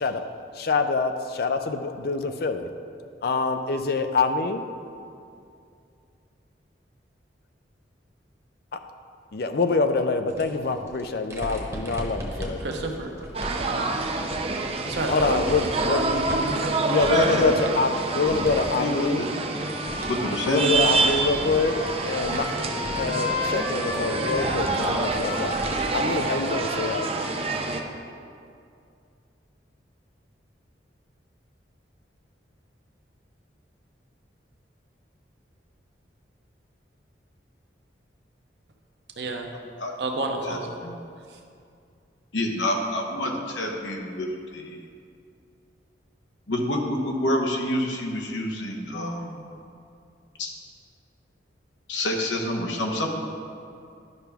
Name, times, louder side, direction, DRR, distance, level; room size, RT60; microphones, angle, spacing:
voice 1, 0.6-2.7 3.2-4.6 8.7-8.8 9.3-12.6 15.1-16.0 16.8-19.3 20.4-21.8 22.0-22.5 23.0-25.6 25.9-27.1, left 4 dB, 55° left, 8 dB, 0.4 m, -25 dB
sound 1, 10.3-18.8 19.1-26.1 26.5-26.6 27.8-27.9, equal, 15° right, 1.0 m, -38 dB
voice 2, 12.6-13.1 13.6-13.9 14.8-17.0 39.2-39.5 40.0-40.8 41.3-41.4, right 2 dB, 65° right, 2 dB, 0.8 m, -30 dB
sound 2, 13.3-27.8, right 3 dB, 30° right, 0.5 m, -27 dB
voice 3, 17.1-17.5 18.8-19.3 20.1-20.7 39.8-39.9 40.5-41.0 42.3-44.8 46.5-49.4 50.4-50.5 51.9-53.1, left 1 dB, 85° left, 1 dB, 1.0 m, -27 dB
Trumpet, 19.5-28.0, left 2 dB, 40° left, 1.3 m, -35 dB
11.0 x 5.8 x 3.4 m, 2.4 s
head